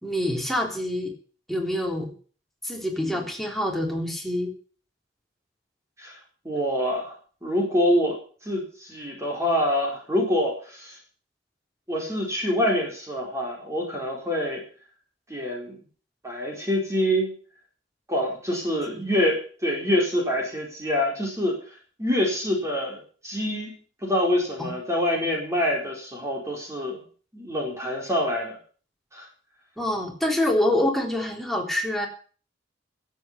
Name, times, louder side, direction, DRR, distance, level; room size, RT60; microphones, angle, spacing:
voice 1, 0.0-1.1 1.5-2.1 2.6-4.5 18.9-19.0 24.6-24.7 29.8-32.1, left 1 dB, ahead, 1 dB, 3.5 m, -26 dB
voice 2, 6.4-7.2 7.4-8.2 8.4-11.0 11.9-14.6 15.3-15.8 16.2-17.3 18.1-21.6 22.0-23.7 24.0-27.0 27.3-28.6 29.1-29.3, equal, 15° right, -1 dB, 4.7 m, -26 dB
15.0 x 8.4 x 8.3 m, 0.42 s
head